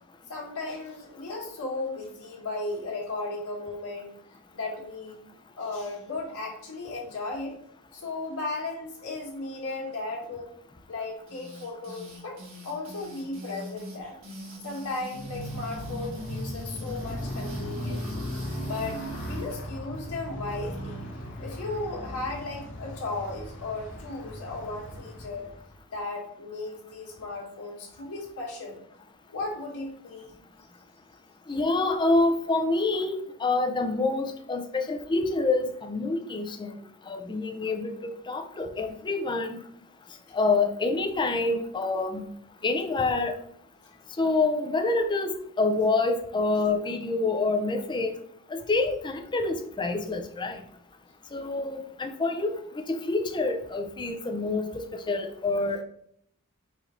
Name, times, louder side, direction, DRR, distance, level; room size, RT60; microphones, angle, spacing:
voice 1, 0.3-4.1 4.5-5.2 5.6-7.5 7.9-10.5 10.9-12.4 12.6-14.2 14.6-21.0 21.4-25.5 25.9-28.8 29.3-30.3 43.8-44.0, left 3 dB, 90° left, -2 dB, 1.6 m, -36 dB
sound 1, 11.3-19.6, equal, 60° right, 1.4 m, -43 dB
Motorcycle, 15.1-25.8, equal, 55° left, 1.1 m, -37 dB
voice 2, 31.5-36.8 37.1-39.6 40.3-42.2 42.6-43.4 44.2-48.1 48.5-50.6 51.3-55.8, left 3 dB, 20° left, 5 dB, 0.4 m, -27 dB
4.8 x 2.6 x 4.3 m, 0.68 s
head